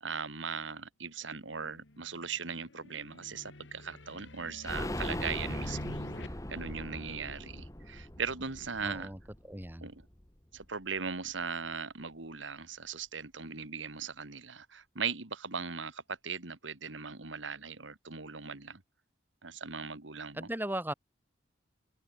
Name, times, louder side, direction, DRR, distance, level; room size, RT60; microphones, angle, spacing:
voice 1, 0.0-9.1 9.8-10.0 10.5-18.8 19.4-20.5, right 5 dB, 90° right, 2.1 m, -39 dB
sound 1, 1.4-6.3, left 1 dB, 80° left, 3.0 m, -49 dB
sound 2, 4.6-10.3 10.6-10.7 11.0-11.1, left 1 dB, 15° left, 2.1 m, -40 dB
voice 2, 8.8-9.2 9.4-9.9 20.3-20.9, right 1 dB, 10° right, 4.8 m, -37 dB
open air
head